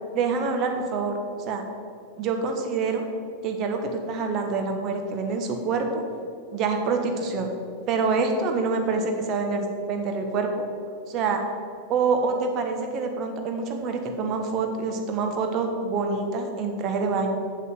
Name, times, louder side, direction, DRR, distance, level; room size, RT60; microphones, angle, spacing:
voice 1, 0.1-1.2 1.5-1.6 2.2-3.0 3.4-6.0 6.5-7.5 7.9-10.7 11.1-11.4 11.9-17.3, right 4 dB, 35° right, 4 dB, 1.3 m, -26 dB
8.1 x 6.9 x 6.6 m, 2.4 s
figure-of-eight pair, 90°, 0 cm